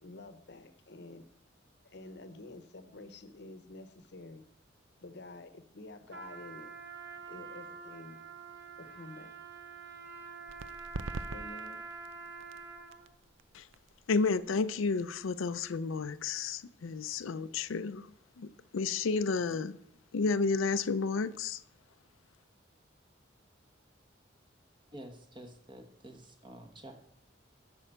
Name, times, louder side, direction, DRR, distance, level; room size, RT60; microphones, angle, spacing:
voice 1, 0.0-1.2 1.8-4.5 5.0-6.7 7.2-8.2 8.8-9.3 11.3-11.8, left 2 dB, 60° left, 0.9 m, -49 dB
Trumpet, 6.1-13.1, right 5 dB, 60° right, 1.3 m, -46 dB
sound 1, 10.5-17.8, right 3 dB, 80° right, 0.5 m, -47 dB
voice 2, 14.1-18.5 18.7-19.8 20.1-21.6, left 4 dB, 90° left, 0.5 m, -31 dB
voice 3, 24.9-26.9, right 1 dB, 25° right, 1.2 m, -49 dB
8.7 x 6.1 x 6.8 m
head